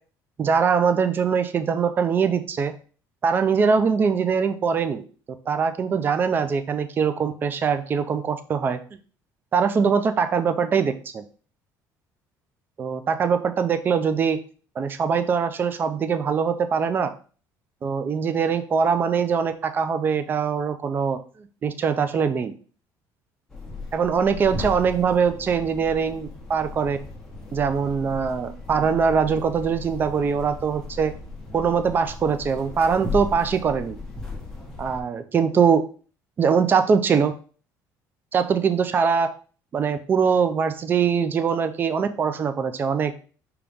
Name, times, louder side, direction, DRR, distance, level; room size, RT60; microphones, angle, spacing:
voice 1, 0.4-2.7 3.2-5.1 5.5-8.8 9.5-11.2 12.8-14.4 14.8-17.1 17.8-21.2 21.6-22.5 23.9-27.0 27.5-31.1 31.5-34.0 34.8-35.8 36.4-37.3 38.3-39.3 39.7-43.2, right 6 dB, 30° right, 10 dB, 0.4 m, -22 dB
sound 1, 23.5-35.0, left 3 dB, 5° left, 1.1 m, -36 dB
5.2 x 2.9 x 3.5 m, 0.40 s
cardioid pair, 145°, 7 cm